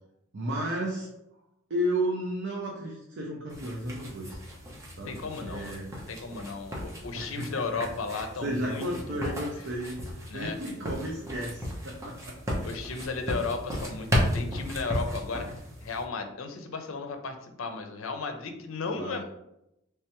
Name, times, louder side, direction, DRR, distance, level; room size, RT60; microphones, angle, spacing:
voice 1, 0.3-1.1 1.7-4.4 5.0-5.9 7.1-7.6 8.1-12.6 18.9-19.2, right 1 dB, 65° right, -2 dB, 0.6 m, -33 dB
sound 1, 3.5-16.0, equal, 15° right, 0.8 m, -35 dB
voice 2, 5.1-5.8 6.1-9.5 10.3-10.6 12.6-15.5 15.8-19.2, left 4 dB, 80° left, 6 dB, 0.5 m, -35 dB
3.4 x 3.3 x 2.9 m, 0.83 s
head